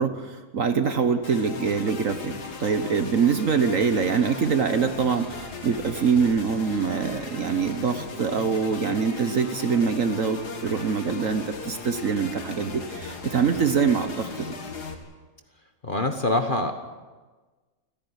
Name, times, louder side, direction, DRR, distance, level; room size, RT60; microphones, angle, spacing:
voice 1, 0.0-14.6, right 6 dB, 50° right, 9 dB, 1.4 m, -24 dB
sound 1, 1.2-14.9, left 4 dB, 60° left, 2.5 m, -37 dB
voice 2, 15.8-16.7, left 2 dB, 30° left, 6 dB, 1.3 m, -24 dB
29.0 x 10.5 x 9.9 m, 1.3 s
omnidirectional pair, 2.0 m